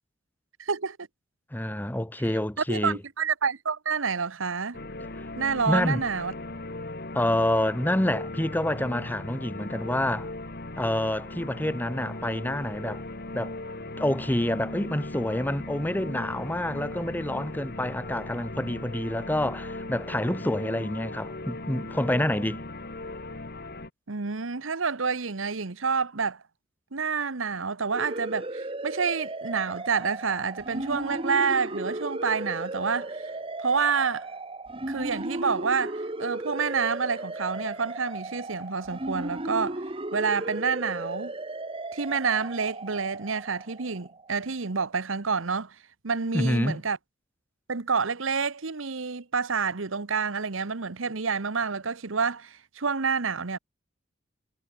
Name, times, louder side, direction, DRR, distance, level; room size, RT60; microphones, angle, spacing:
voice 1, 0.6-1.0 2.7-4.8 5.4-6.3 24.1-26.4 26.9-33.3 33.6-34.3 34.9-39.8 40.1-41.3 41.9-45.7 46.0-47.0 47.7-53.6, right 5 dB, 85° right, 1.1 m, -28 dB
voice 2, 1.5-3.0 5.7-6.0 7.1-10.3 10.8-13.0 13.3-13.5 14.0-22.6 46.3-46.8, left 1 dB, 10° left, 1.1 m, -27 dB
sound 1, 4.7-23.9, left 2 dB, 55° left, 2.9 m, -38 dB
sound 2, 27.9-44.3, right 2 dB, 30° right, 2.6 m, -35 dB
head